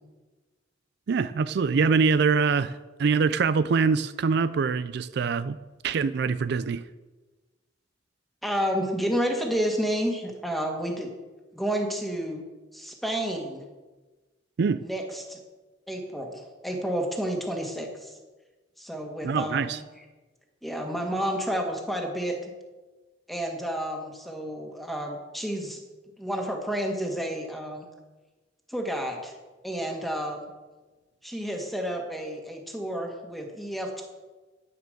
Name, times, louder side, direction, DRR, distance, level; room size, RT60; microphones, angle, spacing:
voice 1, 1.1-5.6 5.8-6.8 14.6-14.8 19.2-19.8, right 5 dB, 65° right, 14 dB, 0.4 m, -24 dB
voice 2, 8.4-11.1 11.5-12.4 12.7-13.7 14.8-15.4 15.9-18.2 18.8-19.8 20.6-22.5 23.3-25.8 26.2-27.9 28.7-29.4 29.6-30.5 31.2-34.0, equal, ahead, 2 dB, 1.8 m, -30 dB
10.0 x 9.5 x 6.7 m, 1.2 s
head